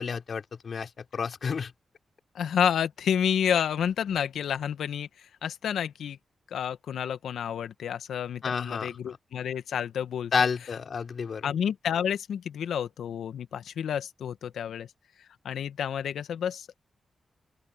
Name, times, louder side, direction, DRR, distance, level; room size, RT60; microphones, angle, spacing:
voice 1, 0.0-1.7 8.4-9.2 10.3-11.5, left 6 dB, 65° left, 4.1 m, -30 dB
voice 2, 2.3-5.1 5.4-6.2 6.5-10.3 11.4-14.9 15.4-16.8, left 8 dB, 80° left, 1.3 m, -29 dB
open air
supercardioid pair, 45°, 0 cm